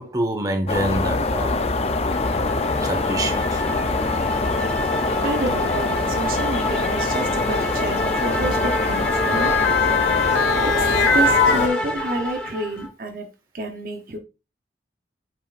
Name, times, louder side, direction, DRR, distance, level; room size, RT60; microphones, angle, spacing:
voice 1, 0.0-1.6 2.8-3.6 7.5-7.7, right 1 dB, 20° right, 1.1 m, -26 dB
sound 1, 0.7-11.7, left 3 dB, 35° left, 0.5 m, -24 dB
sound 2, 1.6-12.9, equal, 5° left, 0.9 m, -29 dB
Motor vehicle (road) / Siren, 3.5-3.7 4.8-12.4 12.8-12.9, left 4 dB, 80° left, 1.1 m, -24 dB
voice 2, 5.2-9.7 10.6-13.3 13.5-14.2, right 1 dB, 50° right, 0.8 m, -29 dB
8.3 x 5.5 x 2.5 m
head